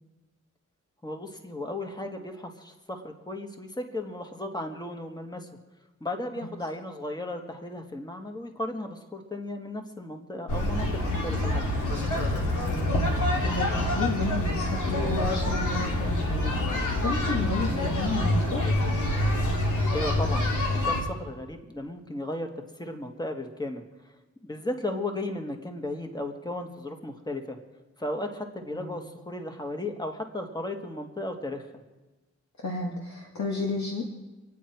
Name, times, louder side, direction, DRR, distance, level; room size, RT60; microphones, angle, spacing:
voice 1, 1.0-5.5 6.0-11.6 17.5-17.8 19.9-22.5 22.8-23.8 24.4-27.6 28.0-31.7, left 1 dB, 15° left, 4 dB, 1.8 m, -35 dB
sound 1, 10.5-21.0, left 1 dB, 90° left, 2.8 m, -26 dB
voice 2, 12.7-13.0 13.4-18.7 28.7-29.0 32.6-34.0, left 2 dB, 65° left, -2 dB, 2.3 m, -32 dB
27.0 x 9.3 x 4.6 m, 1.1 s
cardioid pair, 65°, 30 cm